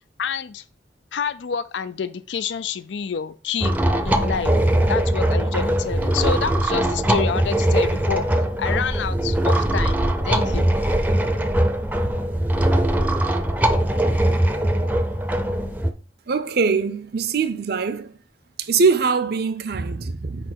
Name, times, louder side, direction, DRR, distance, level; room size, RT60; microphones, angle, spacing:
voice 1, 0.2-0.6 1.1-3.8 4.0-4.5 4.9-8.3 8.6-10.7, left 6 dB, 80° left, 0.4 m, -28 dB
sound 1, 3.6-15.9, right 1 dB, 10° right, 0.6 m, -21 dB
voice 2, 16.3-18.1 18.6-20.5, right 5 dB, 60° right, 0.6 m, -22 dB
4.9 x 4.6 x 6.0 m
head